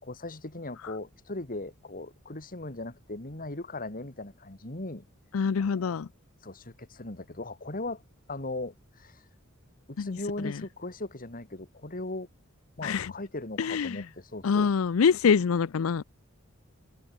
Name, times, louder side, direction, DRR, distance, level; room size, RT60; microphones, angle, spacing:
voice 1, 0.0-5.1 5.6-6.0 6.4-8.0 8.3-9.2 9.9-12.3 12.8-14.7, left 2 dB, 45° left, 2.5 m, -38 dB
voice 2, 5.3-6.1 10.0-10.2 10.4-10.6 12.8-13.1 13.6-14.0 14.4-16.0, left 6 dB, 90° left, 0.5 m, -25 dB
head